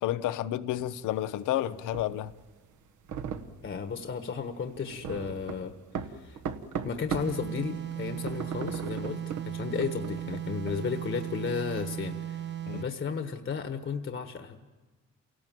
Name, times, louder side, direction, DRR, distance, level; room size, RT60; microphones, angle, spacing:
voice 1, 0.0-2.3 12.7-12.8, left 13 dB, 85° left, 0.8 m, -30 dB
sound 1, 0.7-7.4 7.7-11.9, right 7 dB, 75° right, 1.4 m, -38 dB
voice 2, 3.6-5.7 6.0-6.4 6.8-12.4 12.7-14.6, left 6 dB, 40° left, 1.3 m, -34 dB
sound 2, 7.1-13.0, right 11 dB, 35° right, 1.0 m, -37 dB
27.5 x 18.0 x 7.6 m
cardioid pair, 90°, 30 cm